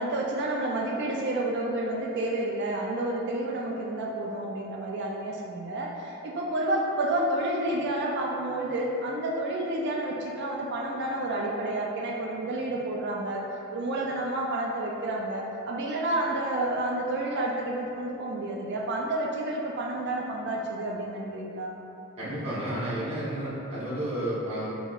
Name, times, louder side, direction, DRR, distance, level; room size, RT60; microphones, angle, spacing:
voice 1, 0.0-13.4 13.7-21.8, right 1 dB, 50° right, -1 dB, 0.4 m, -30 dB
voice 2, 22.2-24.7, right 1 dB, 30° right, -10 dB, 1.1 m, -31 dB
6.3 x 3.0 x 2.5 m, 2.9 s
head